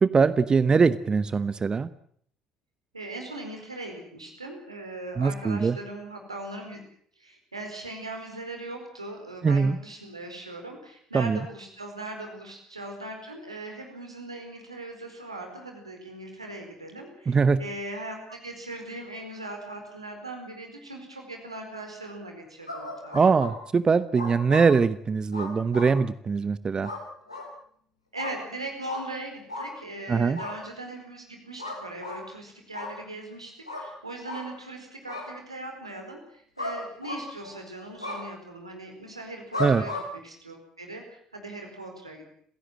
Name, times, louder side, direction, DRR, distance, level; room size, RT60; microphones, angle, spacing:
voice 1, 0.0-1.9 5.2-5.8 9.4-9.8 11.1-11.4 17.3-17.6 23.1-26.9 30.1-30.4 39.6-39.8, right 5 dB, 30° right, 16 dB, 0.9 m, -22 dB
voice 2, 2.9-6.8 7.2-23.2 28.1-39.9 40.2-42.3, right 2 dB, 85° right, 3 dB, 4.6 m, -39 dB
sound 1, 22.7-23.5 24.1-24.7 25.3-25.9 26.8-27.0 27.3-27.5 28.2-28.3 28.9-29.0 29.5-29.7 30.3-30.5 31.6-32.2 32.7-32.9 33.7-33.8 34.2-34.4 35.1-35.3 36.6-36.8 37.0-37.5 38.0-38.2 39.5-40.0, left 2 dB, 90° left, 5.0 m, -34 dB
30.0 x 16.5 x 7.7 m, 0.63 s
figure-of-eight pair, 55°, 3 cm